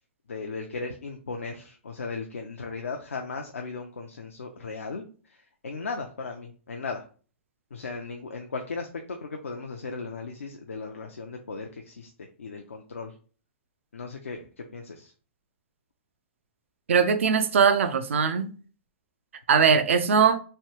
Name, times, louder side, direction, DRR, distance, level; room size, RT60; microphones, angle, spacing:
voice 1, 0.3-5.4 5.6-7.0 7.7-13.1 13.9-15.1, left 4 dB, 90° left, 0.4 m, -37 dB
voice 2, 16.9-18.5 19.5-20.4, right 6 dB, 75° right, 0.5 m, -20 dB
3.2 x 2.3 x 2.9 m
hypercardioid pair, 120°, 7 cm